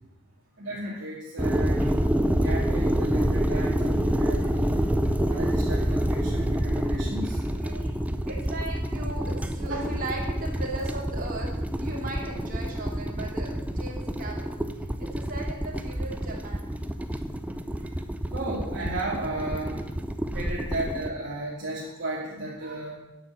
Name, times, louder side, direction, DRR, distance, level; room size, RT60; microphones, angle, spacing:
voice 1, 0.6-1.9 2.4-4.8 5.3-7.4 9.1-9.2 9.7-9.9 10.8-10.9 18.3-19.8 20.3-23.0, right 2 dB, 55° right, -6 dB, 2.1 m, -34 dB
sound 1, 1.4-21.1, equal, 5° right, 0.5 m, -27 dB
voice 2, 4.2-4.9 7.6-14.5 14.8-16.7 17.1-17.2 17.8-17.9 22.6-22.8, right 2 dB, 40° right, -3 dB, 3.2 m, -38 dB
9.5 x 7.3 x 7.8 m, 1.0 s
head